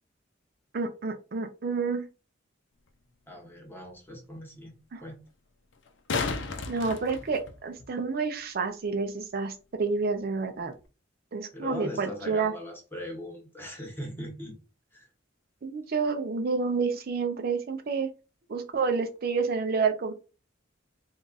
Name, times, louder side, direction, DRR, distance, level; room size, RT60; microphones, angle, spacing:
voice 1, 0.7-2.1 4.9-5.0 6.7-10.7 11.3-12.5 15.6-18.1 18.5-20.1, right 4 dB, 50° right, 6 dB, 0.5 m, -29 dB
sound 1, 2.9-3.0 5.7-7.9 10.7-10.8, left 4 dB, 70° left, 0.6 m, -33 dB
voice 2, 3.3-4.7 5.0-5.2 11.5-14.5 14.9-15.1, equal, 10° left, 1 dB, 1.1 m, -39 dB
3.6 x 2.4 x 3.9 m, 0.32 s
head